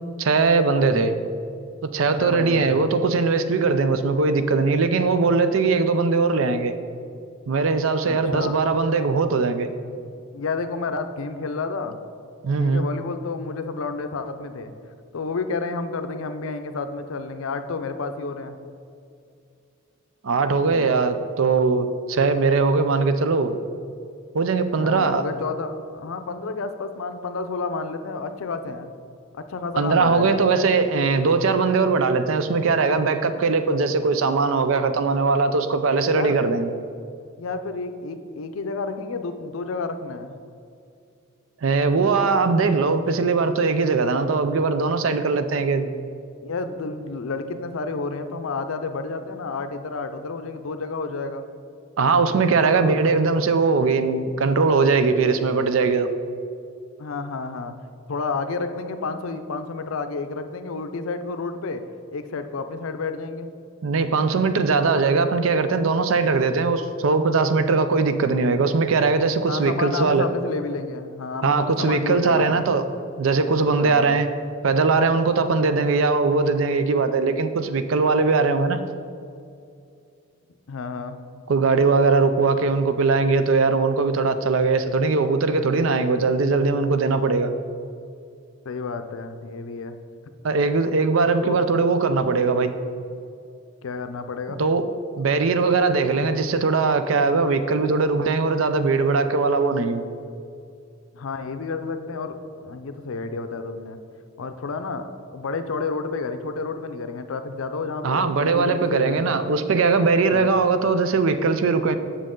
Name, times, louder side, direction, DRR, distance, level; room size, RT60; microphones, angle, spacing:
voice 1, 0.2-1.1 1.8-6.7 7.5-9.7 12.4-12.9 20.2-23.6 24.3-25.2 29.8-36.7 41.6-45.9 52.0-56.1 63.8-70.3 71.4-72.8 73.2-74.3 74.6-78.8 81.5-87.5 90.4-92.7 94.6-94.9 95.2-100.0 108.0-111.9, right 4 dB, 75° right, 10 dB, 0.5 m, -20 dB
voice 2, 2.2-2.8 8.1-8.6 10.3-12.0 12.6-14.7 15.1-18.6 20.7-20.9 24.7-28.9 29.3-30.4 36.1-36.4 37.4-40.4 46.4-51.5 52.7-53.2 57.0-57.7 58.1-61.8 62.1-63.5 69.5-72.6 73.8-74.2 80.7-81.2 88.7-90.0 91.4-91.6 93.8-94.6 101.1-104.0 104.4-109.3 110.3-110.5 111.9-112.0, left 4 dB, 85° left, 9 dB, 0.5 m, -30 dB
7.5 x 6.5 x 3.8 m, 2.5 s
head